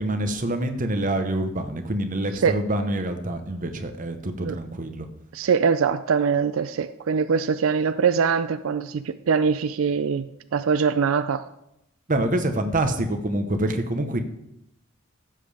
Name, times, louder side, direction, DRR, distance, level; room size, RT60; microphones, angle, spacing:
voice 1, 0.0-5.1 12.1-14.2, right 1 dB, 40° right, 7 dB, 1.0 m, -26 dB
voice 2, 5.3-11.4, right 6 dB, 90° right, 12 dB, 0.4 m, -23 dB
15.0 x 7.6 x 3.4 m, 0.81 s
head